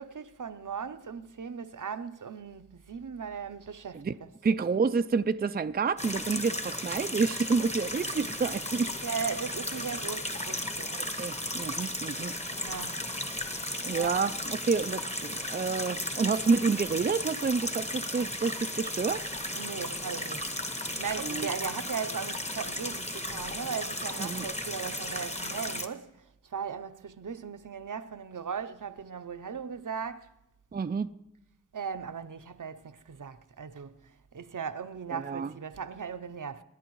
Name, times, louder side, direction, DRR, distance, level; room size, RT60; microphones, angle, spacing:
voice 1, 0.0-4.3 9.0-10.9 12.5-13.0 13.9-14.2 19.5-26.1 26.5-30.3 31.7-33.9 34.3-36.6, right 6 dB, 65° right, 0.7 m, -38 dB
voice 2, 4.4-8.9 10.9-12.3 13.8-19.3 21.2-21.5 24.2-24.5 30.7-31.1 35.1-35.5, right 5 dB, 30° right, 0.4 m, -29 dB
sound 1, 6.0-25.9, left 1 dB, 20° left, 1.2 m, -35 dB
26.5 x 11.0 x 3.1 m
wide cardioid pair, 40°, 33 cm